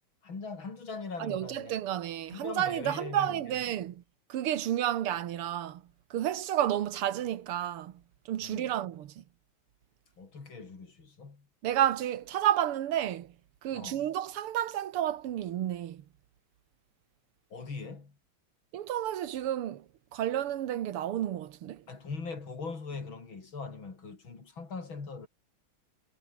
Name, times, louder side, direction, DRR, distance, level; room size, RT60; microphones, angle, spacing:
voice 1, 0.2-1.7 2.3-3.6 8.4-8.8 10.2-11.5 13.7-14.1 17.5-18.1 21.9-25.3, left 4 dB, 65° left, 4.7 m, -41 dB
voice 2, 1.2-4.0 4.3-5.8 6.1-7.9 8.3-9.2 11.6-13.3 13.6-16.0 18.7-19.9 20.1-21.8, right 11 dB, 85° right, 2.1 m, -31 dB
omnidirectional pair, 2.4 m